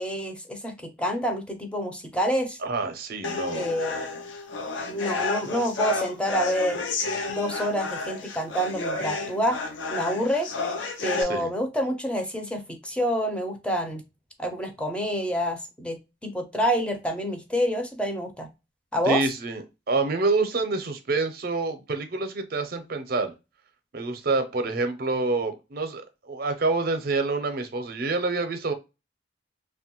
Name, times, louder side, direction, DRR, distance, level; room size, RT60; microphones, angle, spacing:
voice 1, 0.0-2.6 3.5-4.1 4.9-6.8 7.3-9.6 9.9-10.5 11.0-14.0 14.4-18.5 18.9-19.3, equal, 5° left, 0.5 m, -27 dB
voice 2, 2.6-3.7 11.2-11.5 19.1-19.6 19.9-23.3 23.9-28.7, right 3 dB, 55° right, 0.5 m, -27 dB
sound 1, 3.2-11.2, left 3 dB, 75° left, 0.5 m, -31 dB
2.9 x 2.2 x 2.9 m
head